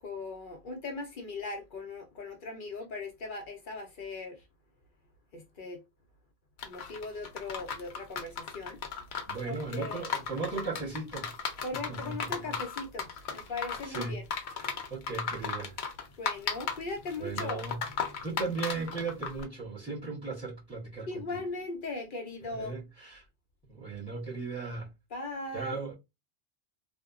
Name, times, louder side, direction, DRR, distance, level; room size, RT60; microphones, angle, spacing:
voice 1, 0.0-4.4 5.3-5.8 6.6-8.8 9.5-10.0 11.6-14.2 16.2-17.7 21.1-22.8 25.1-25.8, left 3 dB, 60° left, 0.7 m, -39 dB
sound 1, 6.6-19.4, left 6 dB, 85° left, 0.8 m, -36 dB
voice 2, 9.3-11.3 11.7-12.6 13.5-14.2 14.5-15.8 17.2-17.8 18.2-21.4 22.5-23.2 23.7-24.9 25.5-25.9, right 4 dB, 5° right, 1.1 m, -37 dB
2.8 x 2.1 x 2.3 m
omnidirectional pair, 1.0 m